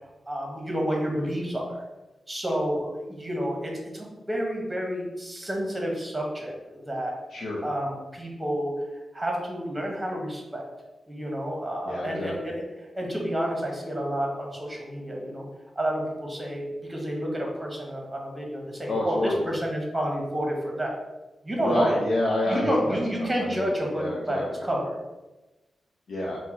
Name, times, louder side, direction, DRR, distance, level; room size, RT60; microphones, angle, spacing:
voice 1, 0.3-1.8 2.3-7.1 7.6-10.6 11.1-15.4 15.8-20.9 21.4-22.0 22.5-25.0, equal, 10° right, -1 dB, 1.0 m, -30 dB
voice 2, 7.3-7.6 11.9-12.3 18.9-19.5 21.5-23.0 23.5-24.5 26.1-26.4, left 1 dB, 75° left, -5 dB, 0.7 m, -28 dB
4.4 x 2.2 x 4.4 m, 1.1 s
wide cardioid pair, 130°, 0 cm